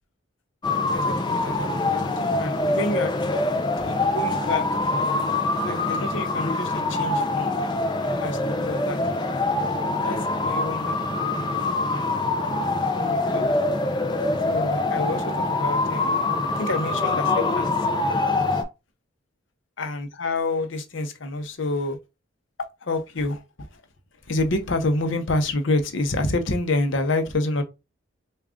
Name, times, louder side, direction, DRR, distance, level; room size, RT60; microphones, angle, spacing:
sound 1, 0.6-18.6, left 2 dB, 20° left, 0.5 m, -24 dB
voice 1, 0.9-3.2 3.5-4.8 5.6-7.8 8.2-9.0 10.0-12.1 12.5-13.5 14.5-17.9 19.8-22.0 22.8-23.8 24.3-27.6, left 2 dB, 65° left, 0.7 m, -28 dB
3.6 x 2.3 x 3.5 m
head